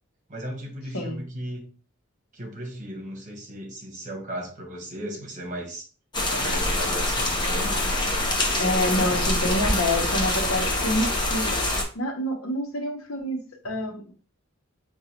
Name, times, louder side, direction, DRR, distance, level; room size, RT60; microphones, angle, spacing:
voice 1, 0.3-1.7 2.3-5.9 6.3-7.8, right 1 dB, 40° right, 1 dB, 1.1 m, -36 dB
sound 1, 6.1-11.8, left 1 dB, 20° left, 0.7 m, -25 dB
voice 2, 8.6-11.5 11.9-14.1, left 1 dB, 85° left, 4 dB, 0.8 m, -27 dB
4.9 x 2.3 x 2.8 m, 0.38 s
head